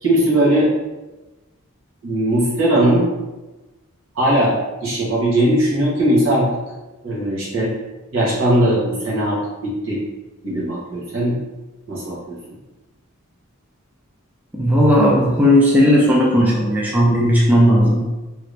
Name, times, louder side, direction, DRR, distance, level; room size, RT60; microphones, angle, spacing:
voice 1, 0.0-0.7 2.0-3.1 4.1-4.6 4.8-6.5 7.0-7.7 8.1-10.0 10.4-11.4 11.9-12.4, right 1 dB, 65° right, -6 dB, 1.1 m, -19 dB
voice 2, 14.5-18.2, equal, 10° right, -5 dB, 0.4 m, -15 dB
3.0 x 2.5 x 3.2 m, 1.1 s
head